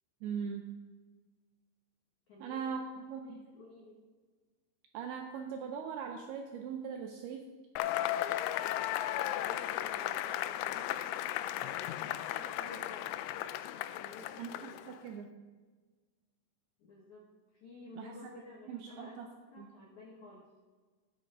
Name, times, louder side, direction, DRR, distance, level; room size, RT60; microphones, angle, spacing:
voice 1, 0.2-0.7 2.4-2.8 3.1-3.4 4.9-7.5 14.4-15.4 18.0-18.1 18.7-19.3 19.6-19.7, right 7 dB, 85° right, 3 dB, 2.2 m, -40 dB
voice 2, 2.3-2.6 3.1-4.0 9.2-13.1 14.0-14.9 16.8-17.3 17.6-20.5, left 2 dB, 70° left, -4 dB, 1.8 m, -53 dB
Cheering / Applause / Crowd, 7.8-15.0, left 13 dB, 90° left, 3.0 m, -35 dB
15.5 x 8.8 x 3.8 m, 1.4 s
omnidirectional pair, 5.4 m